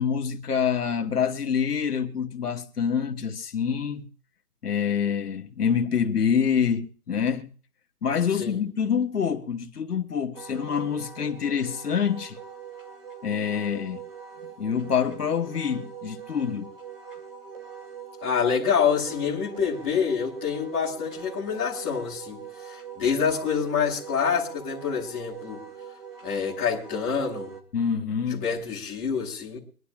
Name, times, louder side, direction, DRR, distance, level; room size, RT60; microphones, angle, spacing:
voice 1, 0.0-4.1 4.6-7.5 8.0-12.4 13.2-14.0 14.6-16.7 27.7-28.4, left 7 dB, 85° left, 1.8 m, -26 dB
Wind instrument woodwind instrument, 10.3-27.6, right 7 dB, 35° right, 2.2 m, -43 dB
voice 2, 18.2-25.6 26.2-27.5 28.3-29.6, left 6 dB, 5° left, 1.4 m, -27 dB
24.5 x 11.5 x 2.4 m
hypercardioid pair, 180°, 45 cm